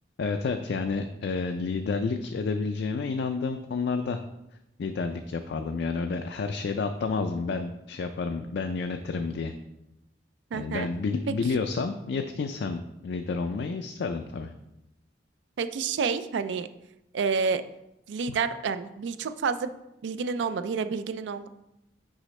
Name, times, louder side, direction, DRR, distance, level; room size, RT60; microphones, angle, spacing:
voice 1, 0.2-4.2 4.8-9.5 10.5-14.5 18.3-18.4, left 4 dB, 65° left, 6 dB, 0.4 m, -30 dB
voice 2, 10.5-10.9 15.6-16.7 17.1-17.6 18.1-19.7 20.0-21.5, right 5 dB, 75° right, 11 dB, 0.4 m, -29 dB
6.3 x 4.9 x 3.2 m, 0.89 s
head